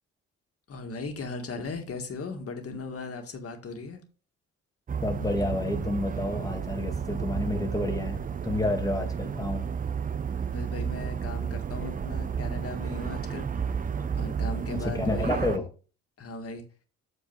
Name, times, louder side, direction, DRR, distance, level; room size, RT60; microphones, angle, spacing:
voice 1, 0.7-4.0 10.5-13.5 14.1-15.5 16.2-16.6, left 3 dB, 50° left, 1.8 m, -37 dB
sound 1, 4.9-15.6, right 7 dB, 30° right, 0.5 m, -32 dB
voice 2, 5.0-8.2 8.4-9.6 14.7-15.7, left 2 dB, 10° left, 1.6 m, -30 dB
7.7 x 4.6 x 4.6 m
cardioid pair, 90°, 30 cm